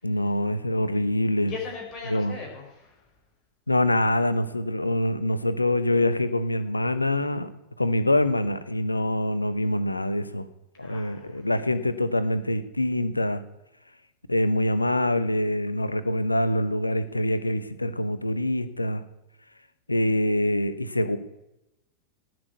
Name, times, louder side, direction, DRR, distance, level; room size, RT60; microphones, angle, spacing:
voice 1, 0.0-1.5 2.1-2.3 3.7-7.5 7.8-10.5 10.8-13.4 14.3-19.0 19.9-21.2, left 1 dB, 85° left, 14 dB, 0.9 m, -25 dB
voice 2, 1.4-3.0 10.8-11.4, left 5 dB, 30° left, -1 dB, 4.5 m, -39 dB
17.0 x 6.2 x 9.3 m, 0.92 s
figure-of-eight pair, 90°, 0 cm